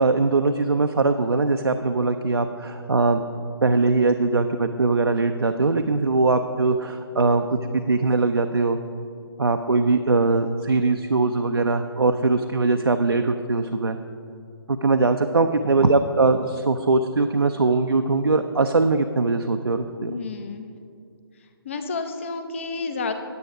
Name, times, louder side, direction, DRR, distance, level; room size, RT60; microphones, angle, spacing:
voice 1, 0.0-3.2 3.6-8.8 9.4-14.0 14.7-20.2, right 3 dB, 70° right, 6 dB, 0.5 m, -21 dB
voice 2, 20.0-20.7 21.6-23.1, left 4 dB, 30° left, 7 dB, 0.7 m, -30 dB
9.5 x 9.0 x 4.8 m, 2.4 s
figure-of-eight pair, 145°, 13 cm